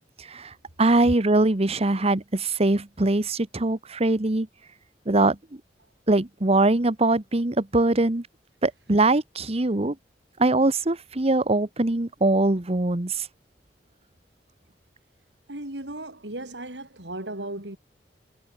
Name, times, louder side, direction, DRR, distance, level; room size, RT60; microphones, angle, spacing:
voice 1, 0.0-4.5 5.1-5.4 6.1-8.2 8.6-9.9 10.4-13.3, right 2 dB, 35° right, 1.2 m, -22 dB
voice 2, 15.5-17.8, right 1 dB, 75° right, 5.3 m, -35 dB
head